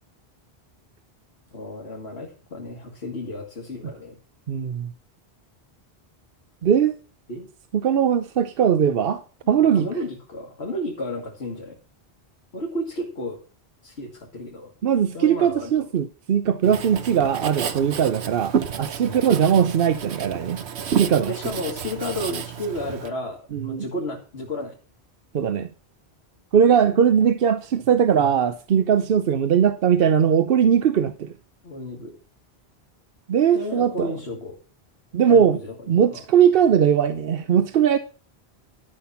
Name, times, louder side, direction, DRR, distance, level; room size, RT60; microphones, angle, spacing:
voice 1, 1.5-4.2 7.3-7.5 9.6-11.8 12.5-13.4 13.8-14.7 15.1-15.9 19.0-19.6 21.3-24.8 31.6-32.2 33.5-34.6 35.3-35.7 36.1-36.2, left 1 dB, 80° left, 2.2 m, -32 dB
voice 2, 4.5-4.9 6.6-7.0 7.7-9.9 14.8-21.3 23.5-23.8 25.3-25.7 26.5-31.3 33.3-34.1 35.1-35.6 35.9-38.0, right 8 dB, 65° right, 0.9 m, -20 dB
Writing, 16.6-23.1, right 7 dB, 90° right, 1.1 m, -30 dB
12.0 x 6.0 x 5.6 m
omnidirectional pair, 1.1 m